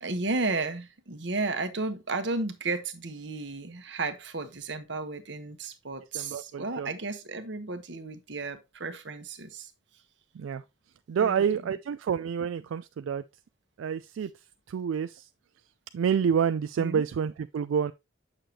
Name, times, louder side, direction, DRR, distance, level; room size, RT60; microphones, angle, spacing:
voice 1, 0.0-9.7 11.2-11.7 16.8-17.0, right 3 dB, 65° right, 1.1 m, -33 dB
voice 2, 6.1-6.9 10.4-10.6 11.1-13.2 13.8-14.3 14.7-15.3 15.9-17.9, right 7 dB, 85° right, 0.3 m, -28 dB
7.8 x 6.5 x 2.8 m
head